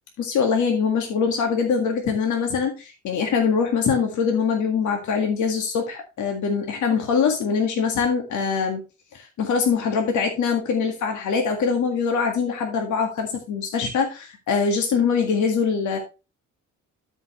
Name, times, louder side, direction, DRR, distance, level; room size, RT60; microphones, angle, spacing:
voice 1, 0.2-8.8 9.1-16.0, left 6 dB, 75° left, 3 dB, 1.9 m, -23 dB
12.5 x 5.5 x 3.1 m, 0.29 s
cardioid pair, 90°, 30 cm